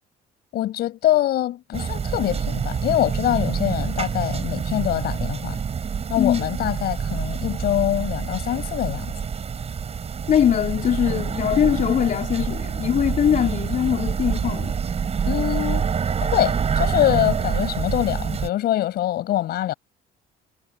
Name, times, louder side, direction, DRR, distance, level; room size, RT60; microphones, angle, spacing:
voice 1, 0.5-5.6 6.1-9.1 15.2-15.9 16.2-19.7, left 13 dB, 70° left, 5.8 m, -24 dB
sound 1, 1.7-18.5, right 6 dB, 40° right, 6.2 m, -26 dB
voice 2, 10.3-14.7, left 9 dB, 50° left, 3.5 m, -21 dB
cardioid pair, 110°, 17 cm